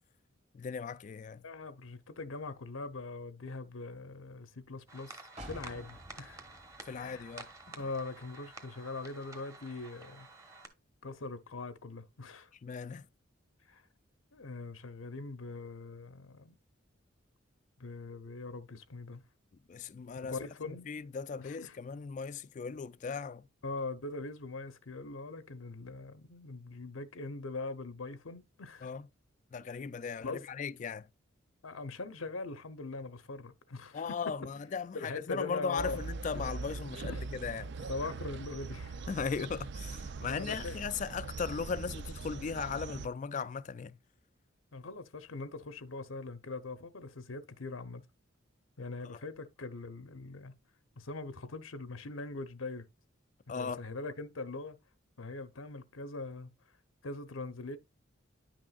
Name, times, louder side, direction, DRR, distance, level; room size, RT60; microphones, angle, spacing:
voice 1, 0.5-1.4 6.8-7.5 12.6-13.1 19.7-20.4 20.6-23.5 28.8-29.1 29.5-31.1 33.9-37.7 39.1-44.0 49.1-49.2 53.5-53.9, left 5 dB, 40° left, 0.3 m, -38 dB
voice 2, 1.4-6.4 6.9-7.3 7.8-10.3 11.0-12.5 13.7-13.8 14.3-16.6 17.8-19.2 20.2-20.9 21.4-21.8 23.6-28.9 30.2-30.5 31.6-34.2 34.9-36.1 37.1-37.2 37.9-39.0 40.3-40.8 44.7-48.0 48.8-50.5 51.0-52.9 53.5-54.8 55.2-56.5 57.0-57.8, left 3 dB, 90° left, 0.8 m, -42 dB
sound 1, 4.9-10.7, right 3 dB, 15° right, 1.1 m, -51 dB
sound 2, 5.4-9.1 9.5-9.6, equal, 35° right, 1.6 m, -52 dB
sound 3, 35.8-43.1, right 4 dB, 55° right, 0.4 m, -41 dB
10.0 x 6.1 x 2.4 m
head